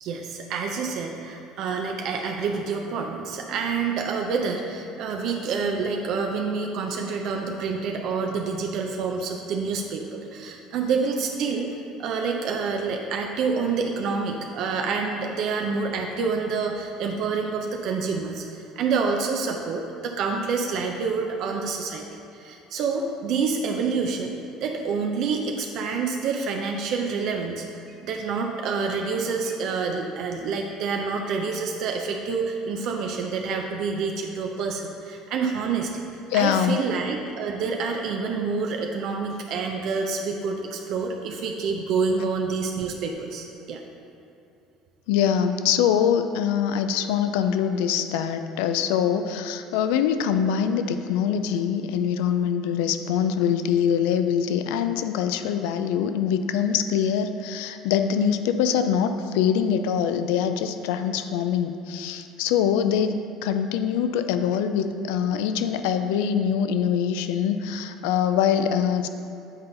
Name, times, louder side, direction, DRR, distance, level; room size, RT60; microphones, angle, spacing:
voice 1, 0.0-11.7 12.0-22.0 22.3-24.3 24.6-36.0 36.3-43.8, right 5 dB, 65° right, 2 dB, 0.5 m, -27 dB
voice 2, 36.3-36.8 45.1-69.1, left 8 dB, 85° left, 9 dB, 0.3 m, -24 dB
7.9 x 4.0 x 3.8 m, 2.8 s
supercardioid pair, 100°, 0 cm